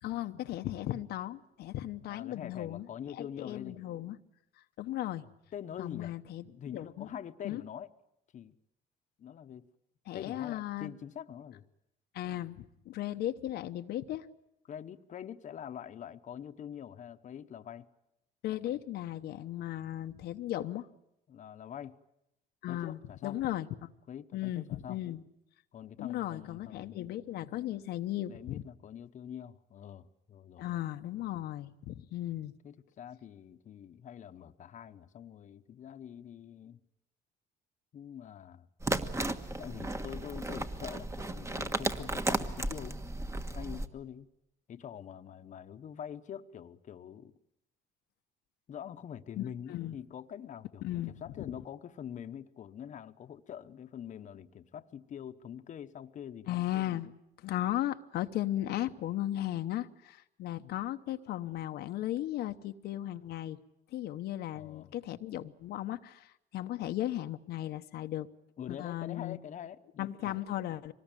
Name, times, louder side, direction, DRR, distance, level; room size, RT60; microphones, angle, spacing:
voice 1, 0.0-4.2 4.6-5.3 5.8-6.5 6.7-7.1 7.4-7.6 10.1-10.9 12.1-14.3 18.4-20.9 22.6-23.9 24.3-25.2 26.0-28.6 30.6-32.5 49.4-49.9 50.8-51.5 56.5-57.1 57.4-63.6 63.9-68.3 68.7-69.4 70.0-70.9, left 13 dB, 70° left, 0.9 m, -36 dB
voice 2, 2.1-3.8 5.5-6.1 6.5-7.9 8.3-8.5 9.2-9.7 10.1-11.6 14.7-17.9 21.3-22.0 22.7-23.4 24.1-25.0 25.7-27.0 28.3-30.7 32.6-36.8 37.9-38.7 39.6-43.0 43.5-44.3 44.7-47.3 48.7-56.6 64.5-64.9 68.6-70.4, left 9 dB, 45° left, 1.0 m, -45 dB
sound 1, 38.8-43.9, right 2 dB, 15° right, 1.4 m, -34 dB
24.5 x 20.0 x 9.0 m
cardioid pair, 110°, 17 cm